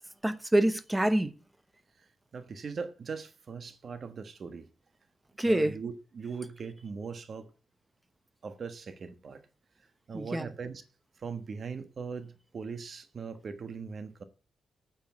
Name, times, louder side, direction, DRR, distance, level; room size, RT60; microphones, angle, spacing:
voice 1, 0.2-1.3 5.4-5.8 10.1-10.5, right 1 dB, 10° right, 1.1 m, -26 dB
voice 2, 2.0-4.7 5.4-7.5 8.4-9.4 10.1-10.8 11.2-14.2, right 5 dB, 50° right, 1.3 m, -40 dB
9.2 x 7.2 x 8.5 m
cardioid pair, 115°, 0 cm